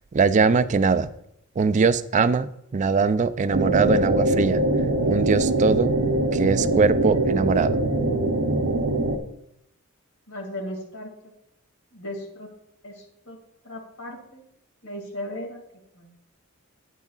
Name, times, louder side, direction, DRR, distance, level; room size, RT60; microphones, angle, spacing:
voice 1, 0.1-1.1 1.6-4.6 5.0-5.9 6.3-7.8, right 5 dB, 35° right, 14 dB, 0.4 m, -21 dB
sound 1, 3.5-9.2, right 1 dB, 75° right, 0.8 m, -23 dB
voice 2, 10.3-11.1 11.9-12.5 12.8-13.4 13.6-14.4 14.8-15.6 15.9-16.1, left 1 dB, 90° left, 0 dB, 2.4 m, -36 dB
12.0 x 9.2 x 2.4 m, 0.78 s
head